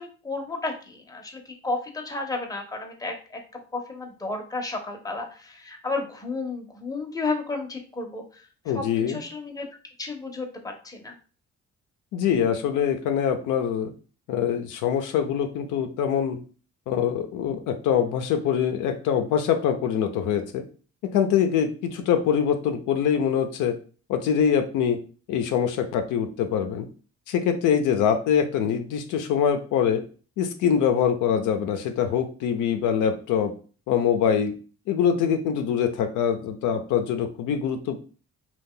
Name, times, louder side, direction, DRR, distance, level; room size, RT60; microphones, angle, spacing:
voice 1, 0.0-3.4 3.7-8.4 8.7-9.7 10.0-11.2, left 3 dB, 10° left, 3 dB, 0.7 m, -32 dB
voice 2, 8.7-9.2 12.1-13.9 14.3-16.4 16.9-20.6 21.1-23.7 24.1-25.0 25.3-26.9 27.3-30.0 30.4-33.5 33.9-34.5 34.9-38.0, left 8 dB, 85° left, 6 dB, 0.5 m, -24 dB
2.7 x 2.3 x 3.7 m, 0.38 s
cardioid pair, 90°, 30 cm